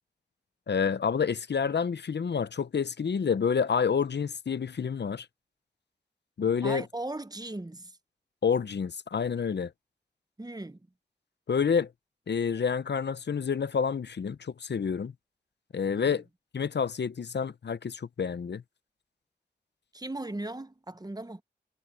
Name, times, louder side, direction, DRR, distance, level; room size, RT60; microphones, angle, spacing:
voice 1, 0.7-5.3 6.4-6.8 8.4-9.7 11.5-11.9 12.3-15.1 15.7-16.2 16.5-18.6, left 6 dB, 80° left, 0.7 m, -28 dB
voice 2, 6.6-8.0 10.4-10.9 15.9-16.2 19.9-21.4, right 2 dB, 20° right, 1.0 m, -38 dB
wide cardioid pair, 50°, 18 cm